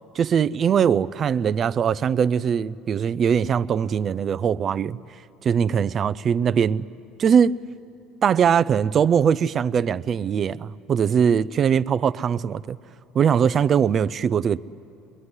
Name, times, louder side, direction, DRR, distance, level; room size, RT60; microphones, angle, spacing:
voice 1, 0.1-5.0 5.4-6.8 7.2-7.6 8.2-12.8 13.1-14.6, right 7 dB, 40° right, 0.6 m, -21 dB
22.5 x 22.5 x 9.8 m
supercardioid pair, 90°, 0 cm